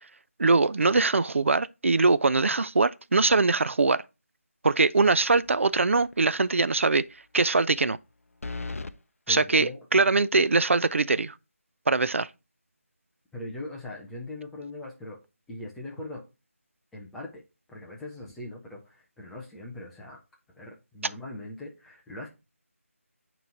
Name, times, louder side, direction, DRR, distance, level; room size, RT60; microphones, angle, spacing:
voice 1, 0.4-4.0 4.6-7.0 7.3-8.0 9.3-11.3 11.9-12.3, right 3 dB, 60° right, 0.4 m, -22 dB
sound 1, 5.3-5.8 6.1-6.2 8.4-9.0, left 3 dB, 70° left, 0.5 m, -36 dB
voice 2, 9.3-9.8 13.3-15.2 15.5-16.2 16.9-17.4 17.7-20.2 20.5-22.3, left 1 dB, ahead, 0.5 m, -40 dB
9.0 x 3.1 x 3.8 m
figure-of-eight pair, 165°, 8 cm